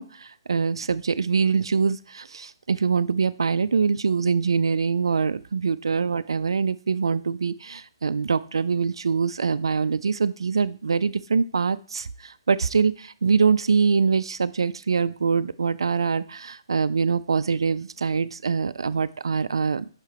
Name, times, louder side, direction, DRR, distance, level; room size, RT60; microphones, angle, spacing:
voice 1, 0.0-19.9, right 5 dB, 70° right, 13 dB, 0.3 m, -24 dB
5.6 x 5.5 x 3.6 m, 0.42 s
figure-of-eight pair, 135°, 3 cm